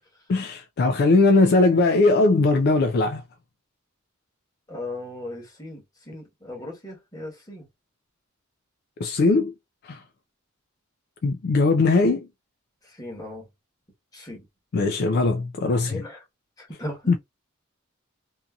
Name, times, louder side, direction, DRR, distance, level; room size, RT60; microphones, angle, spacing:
voice 1, 0.3-3.2 9.0-9.5 9.8-10.0 11.2-12.3 14.7-16.0 17.1-17.2, left 3 dB, 50° left, 0.3 m, -20 dB
voice 2, 4.7-7.7 12.8-13.5 14.1-14.4 15.9-16.2 16.6-17.1, left 1 dB, 20° left, 1.2 m, -37 dB
2.6 x 2.6 x 2.3 m
head